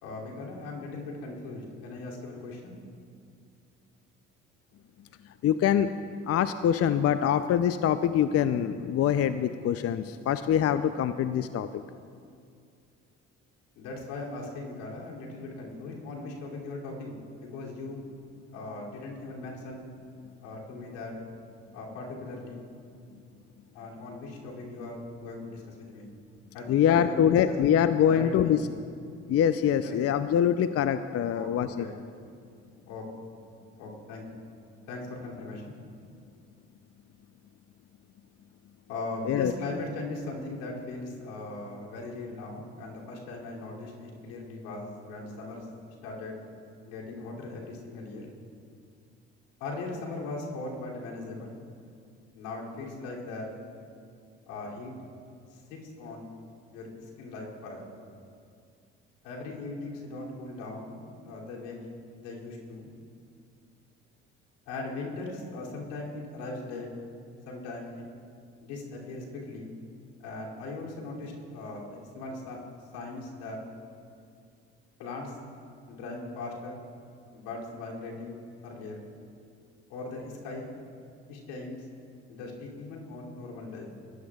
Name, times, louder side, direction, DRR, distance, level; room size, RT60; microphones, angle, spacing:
voice 1, 0.0-2.8 13.7-18.0 18.5-19.8 20.4-21.1 21.7-22.6 23.7-26.1 26.5-27.5 28.1-28.6 29.8-30.0 31.3-32.0 32.9-33.0 33.8-34.4 34.9-35.8 38.9-45.7 46.0-46.3 46.9-48.2 49.6-51.6 52.3-53.5 54.5-54.9 55.5-56.3 56.7-57.8 59.2-61.9 62.2-62.9 64.7-66.9 67.5-68.0 68.6-69.7 70.2-72.6 72.9-73.6 75.0-75.3 75.9-76.8 77.3-78.4 78.6-79.0 79.9-80.7 81.3-81.8 82.3-83.9, left 2 dB, 85° left, -4 dB, 2.9 m, -39 dB
voice 2, 5.4-5.9 6.3-11.8 26.7-28.6 29.3-31.9 39.3-39.5, left 9 dB, 50° left, 11 dB, 0.5 m, -24 dB
21.0 x 15.0 x 2.4 m, 2.3 s
hypercardioid pair, 60°, 32 cm